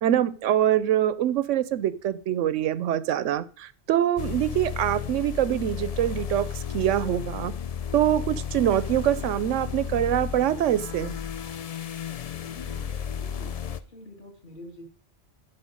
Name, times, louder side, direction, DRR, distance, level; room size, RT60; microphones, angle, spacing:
voice 1, 0.0-7.5 7.9-11.2, right 11 dB, 90° right, 16 dB, 1.0 m, -24 dB
sound 1, 4.2-13.8, left 8 dB, 60° left, 0.4 m, -33 dB
voice 2, 12.4-14.8, left 1 dB, 40° left, 0 dB, 2.6 m, -47 dB
11.0 x 5.7 x 5.1 m, 0.42 s
omnidirectional pair, 1.2 m